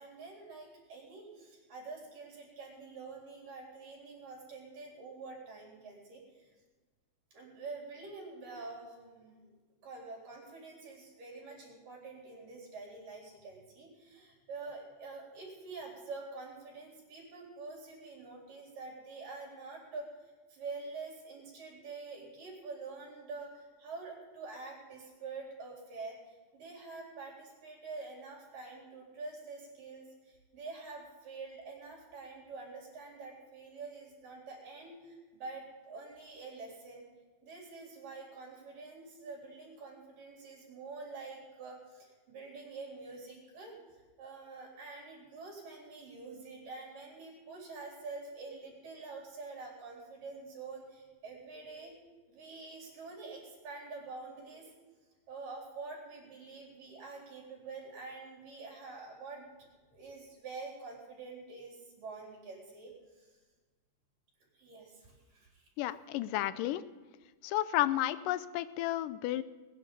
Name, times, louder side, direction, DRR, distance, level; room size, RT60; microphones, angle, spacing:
voice 1, 0.0-6.5 7.3-9.5 9.8-37.0 37.4-51.9 52.3-54.7 55.3-59.5 59.9-62.9 63.2-63.3 64.5-65.7, right 3 dB, 80° right, -2 dB, 5.7 m, -47 dB
voice 2, 65.8-66.8 67.4-69.4, left 14 dB, 85° left, 15 dB, 2.2 m, -32 dB
21.0 x 10.0 x 5.3 m, 1.3 s
omnidirectional pair, 3.8 m